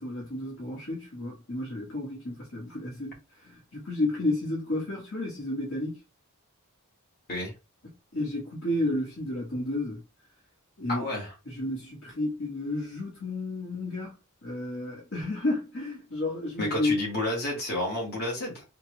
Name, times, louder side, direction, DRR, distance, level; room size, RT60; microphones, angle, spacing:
voice 1, 0.0-6.0 7.8-10.0 10.8-11.1 11.5-17.0, left 2 dB, 65° left, 1.8 m, -32 dB
voice 2, 10.9-11.3 16.6-18.6, left 1 dB, 50° left, 2.1 m, -30 dB
4.3 x 2.5 x 3.3 m
head